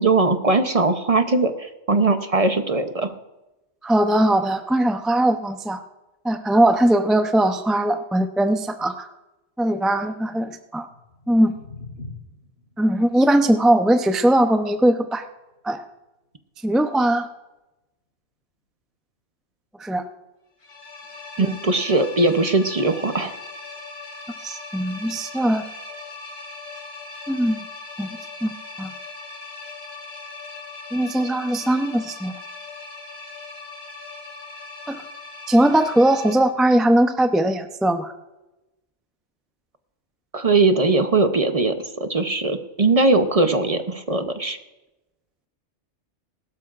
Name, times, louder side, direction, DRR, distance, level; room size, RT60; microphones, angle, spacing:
voice 1, 0.0-3.1 21.4-23.3 40.3-44.6, right 3 dB, 35° right, 7 dB, 0.7 m, -20 dB
voice 2, 3.8-5.8 6.2-9.1 9.6-10.9 11.3-11.5 12.8-15.2 15.6-15.8 16.6-17.3 19.8-20.0 21.4-21.6 24.4-25.6 27.3-27.6 28.0-28.5 28.8-28.9 30.9-32.3 34.9-35.0 35.5-38.1, right 1 dB, ahead, 7 dB, 0.3 m, -20 dB
sound 1, 10.8-16.9, left 3 dB, 55° left, 3.8 m, -45 dB
sound 2, 20.6-36.3, left 3 dB, 85° left, 2.8 m, -39 dB
20.5 x 12.5 x 2.5 m, 0.99 s
omnidirectional pair, 1.3 m